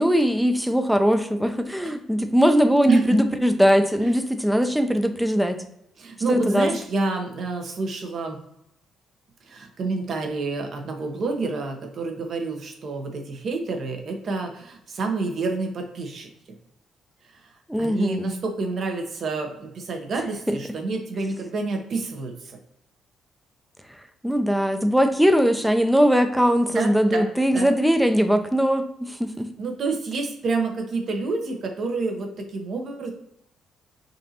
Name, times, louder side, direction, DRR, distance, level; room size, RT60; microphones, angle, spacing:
voice 1, 0.0-5.6 6.3-6.7 17.7-18.3 20.5-20.6 24.2-29.5, equal, 5° right, 7 dB, 0.5 m, -20 dB
voice 2, 1.8-2.2 2.9-3.2 4.0-4.1 6.0-8.4 9.4-16.3 17.3-17.5 17.8-22.6 26.7-27.7 29.6-33.1, right 3 dB, 55° right, 3 dB, 0.9 m, -28 dB
5.2 x 2.6 x 2.9 m, 0.80 s
cardioid pair, 90°, 0 cm